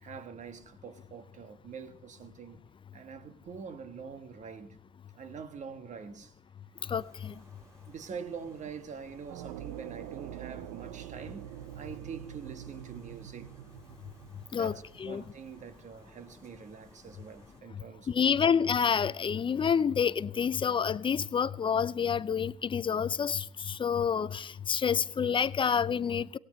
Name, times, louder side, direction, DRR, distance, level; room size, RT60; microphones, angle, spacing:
voice 1, 0.0-2.6 2.9-4.8 5.2-6.3 7.9-13.5 14.5-18.3, right 6 dB, 45° right, 1.4 m, -45 dB
sound 1, 6.8-17.6, right 1 dB, 15° right, 6.6 m, -58 dB
voice 2, 6.9-7.3 14.5-14.7 15.0-15.2 18.1-26.4, left 7 dB, 30° left, 0.5 m, -28 dB
sound 2, 9.3-15.1, right 13 dB, 80° right, 0.6 m, -45 dB
18.0 x 16.5 x 3.2 m
supercardioid pair, 75°, 17 cm